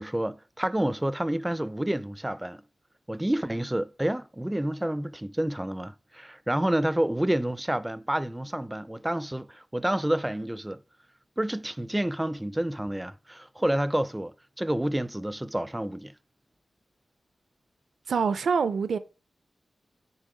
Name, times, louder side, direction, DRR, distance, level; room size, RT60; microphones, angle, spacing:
voice 1, 0.0-2.6 3.1-10.8 11.4-16.1, right 1 dB, 10° right, 0.3 m, -29 dB
voice 2, 18.1-19.0, right 5 dB, 75° right, 0.5 m, -25 dB
9.5 x 3.6 x 4.8 m
wide cardioid pair, 150°, 0 cm